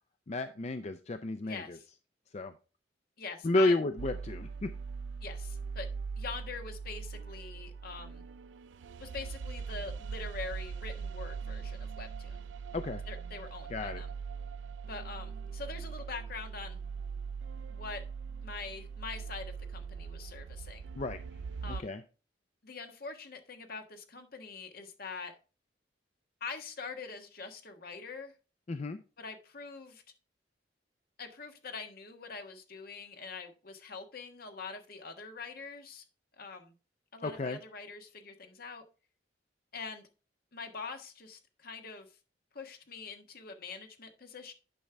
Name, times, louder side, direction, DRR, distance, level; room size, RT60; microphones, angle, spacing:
voice 1, 0.3-1.8 2.3-2.5 3.4-4.7 12.7-13.0 13.7-14.0 21.0-21.2 21.6-22.0 28.7-29.0 37.2-37.6, left 2 dB, 35° left, 9 dB, 0.5 m, -32 dB
voice 2, 1.4-1.9 3.2-3.7 5.2-5.9 6.2-8.2 9.0-12.4 13.1-14.1 14.9-16.8 17.7-18.0 18.4-20.9 21.6-21.9 22.6-25.3 26.4-28.3 29.2-30.0 31.2-36.0 36.3-36.7 37.1-38.8 39.7-40.0 40.5-42.1 42.5-44.5, left 4 dB, 55° left, 5 dB, 1.4 m, -44 dB
sound 1, 4.0-21.8, right 5 dB, 70° right, 0.3 m, -41 dB
10.5 x 5.4 x 3.4 m, 0.34 s
head